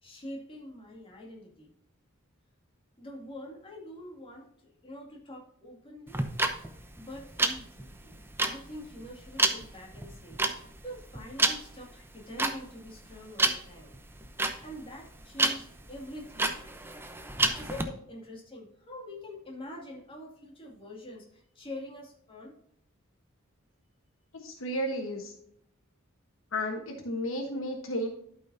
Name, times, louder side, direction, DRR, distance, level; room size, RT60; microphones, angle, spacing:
voice 1, 0.0-1.7 3.0-6.2 7.0-14.0 14.6-16.5 17.6-22.5, left 1 dB, 25° left, -2 dB, 2.3 m, -45 dB
sound 1, 6.1-17.8, right 2 dB, 10° right, 0.7 m, -30 dB
voice 2, 24.4-25.3 26.5-28.1, equal, 70° left, 3 dB, 1.2 m, -33 dB
12.0 x 5.6 x 2.7 m, 0.72 s
head